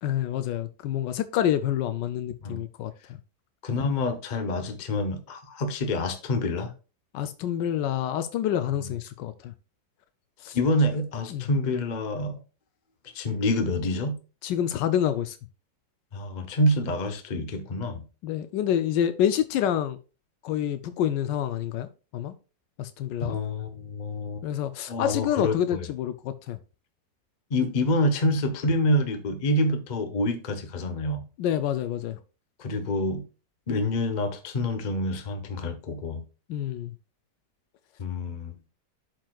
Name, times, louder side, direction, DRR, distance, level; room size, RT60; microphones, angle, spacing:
voice 1, 0.0-2.9 7.1-9.5 10.4-10.6 11.3-11.4 14.4-15.4 18.2-20.0 20.4-21.9 22.1-22.3 22.8-23.4 24.4-26.6 31.4-32.2 36.5-36.9, left 10 dB, 85° left, 1.2 m, -27 dB
voice 2, 3.6-6.7 8.7-8.9 10.5-12.4 13.0-14.2 16.1-18.0 23.2-24.4 24.9-25.9 27.5-31.2 32.6-33.2 33.7-36.2 38.0-38.5, left 1 dB, 40° left, 0.7 m, -27 dB
11.5 x 4.6 x 2.3 m
omnidirectional pair, 1.9 m